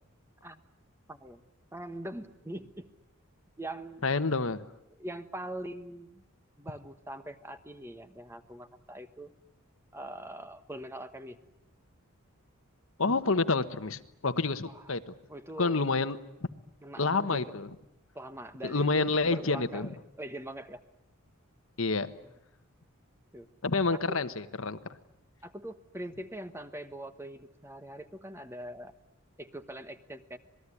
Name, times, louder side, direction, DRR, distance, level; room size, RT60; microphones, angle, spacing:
voice 1, 1.1-1.4 1.7-2.9 3.6-4.0 4.9-6.2 6.6-9.3 9.9-11.4 14.6-14.9 15.3-15.8 16.8-17.6 18.1-20.8 23.3-23.5 24.1-24.2 25.4-28.9 29.4-30.4, right 1 dB, 10° right, 9 dB, 1.2 m, -42 dB
voice 2, 4.0-4.6 13.0-15.1 15.6-16.2 17.0-17.7 18.6-19.9 21.8-22.1 23.6-24.8, left 3 dB, 65° left, 11 dB, 1.3 m, -28 dB
27.0 x 20.0 x 10.0 m, 0.83 s
head